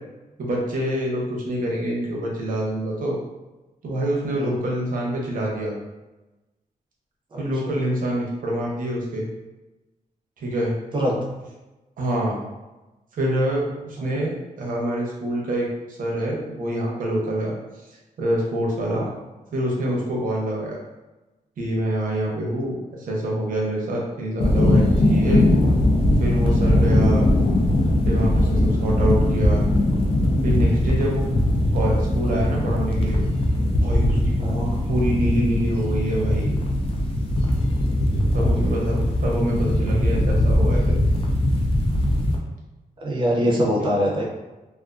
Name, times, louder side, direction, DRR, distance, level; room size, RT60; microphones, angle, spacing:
voice 1, 0.4-3.2 3.8-5.7 7.4-9.3 10.4-10.7 12.0-12.4 13.1-17.5 18.2-19.0 19.5-20.8 21.6-25.4 26.2-27.2 28.1-29.6 30.4-31.3 31.7-33.2 33.8-36.5 38.3-41.0, right 1 dB, 70° right, -3 dB, 0.7 m, -26 dB
voice 2, 10.9-11.2 14.0-14.2 18.9-19.1 34.4-34.6 38.4-38.7 43.0-44.2, equal, 35° right, -2 dB, 0.5 m, -24 dB
sound 1, 24.4-42.4, left 1 dB, 40° left, 0.4 m, -20 dB
2.4 x 2.4 x 2.4 m, 1.1 s
wide cardioid pair, 165°, 14 cm